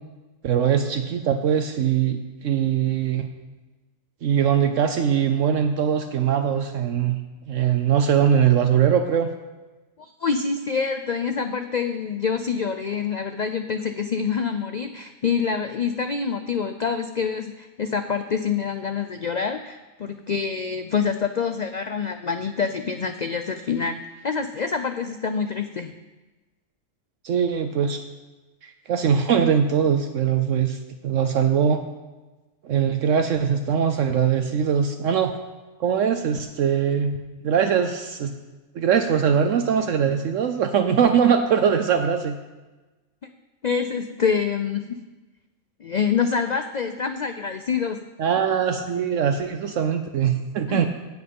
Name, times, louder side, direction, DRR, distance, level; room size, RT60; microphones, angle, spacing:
voice 1, 0.4-3.3 4.2-7.2 7.5-9.3 27.2-28.0 28.6-31.8 32.6-35.3 35.8-37.2 37.4-38.3 38.7-42.4 48.2-50.9, right 8 dB, 70° right, 7 dB, 1.0 m, -21 dB
voice 2, 10.0-25.9 43.6-45.0 45.8-48.0 50.7-50.9, left 6 dB, 65° left, 8 dB, 0.4 m, -26 dB
17.0 x 6.3 x 5.3 m, 1.2 s
omnidirectional pair, 1.4 m